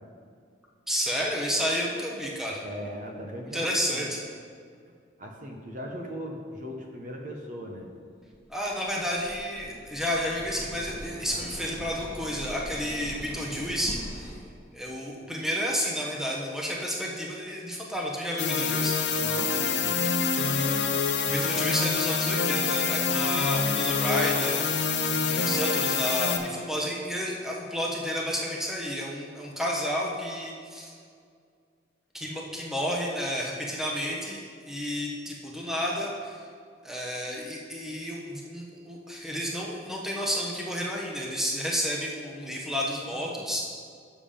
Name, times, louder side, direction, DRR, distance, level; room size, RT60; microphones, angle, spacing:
voice 1, 0.9-2.6 3.5-4.2 8.5-14.3 14.7-18.9 21.2-24.6 25.3-30.9 32.1-36.4 36.8-43.6, equal, ahead, -2 dB, 0.9 m, -31 dB
voice 2, 2.6-4.1 5.2-7.9 11.3-11.5 19.1-20.1 43.1-43.4, equal, 40° right, 1 dB, 0.8 m, -40 dB
sound 1, 8.3-14.3, equal, 25° left, 1.1 m, -42 dB
sound 2, 18.4-26.4, left 5 dB, 65° left, 0.7 m, -26 dB
7.2 x 7.0 x 5.1 m, 2.2 s
head